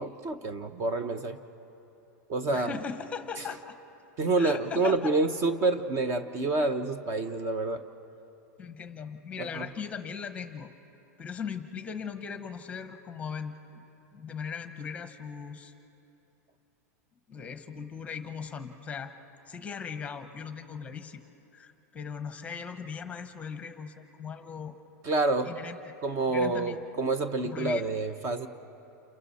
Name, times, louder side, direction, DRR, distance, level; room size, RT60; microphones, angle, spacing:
voice 1, 0.0-1.4 2.3-2.7 4.2-7.8 9.4-9.7 25.0-25.5 26.0-28.5, right 3 dB, 30° right, 10 dB, 0.8 m, -28 dB
voice 2, 2.5-3.7 4.4-5.0 6.6-6.7 8.6-10.7 11.2-13.8 14.1-15.7 17.3-19.1 19.5-21.2 21.5-24.7 25.4-25.9 26.3-26.8 27.5-27.8, left 6 dB, 15° left, 8 dB, 1.0 m, -39 dB
29.0 x 27.0 x 4.2 m, 2.8 s
supercardioid pair, 150°, 9 cm